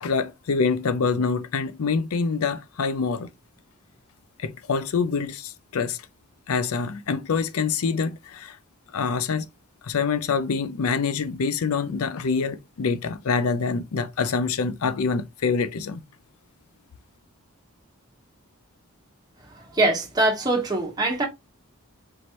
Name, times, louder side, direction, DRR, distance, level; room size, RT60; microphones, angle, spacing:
voice 1, 0.0-3.3 4.4-6.0 6.5-8.6 8.9-9.5 9.8-16.0, left 5 dB, 85° left, 0.5 m, -25 dB
voice 2, 19.5-21.2, right 2 dB, 20° right, 1.1 m, -23 dB
4.5 x 3.1 x 2.9 m
head